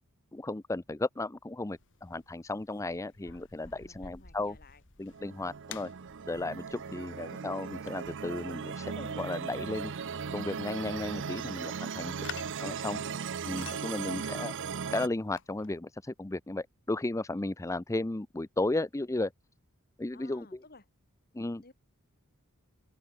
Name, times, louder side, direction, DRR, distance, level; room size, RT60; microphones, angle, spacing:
voice 1, 0.3-4.6 5.0-5.9 6.3-9.9 10.3-12.1 12.6-13.0 13.4-14.5 14.9-19.3 20.0-20.5 21.3-21.6, left 2 dB, 15° left, 0.5 m, -34 dB
sound 1, 1.7-15.8, left 7 dB, 60° left, 3.5 m, -52 dB
voice 2, 3.7-4.8 6.9-7.6 20.1-20.8 21.6-21.7, left 3 dB, 45° left, 5.7 m, -57 dB
sound 2, 5.1-15.1, right 6 dB, 55° right, 0.6 m, -38 dB
open air
head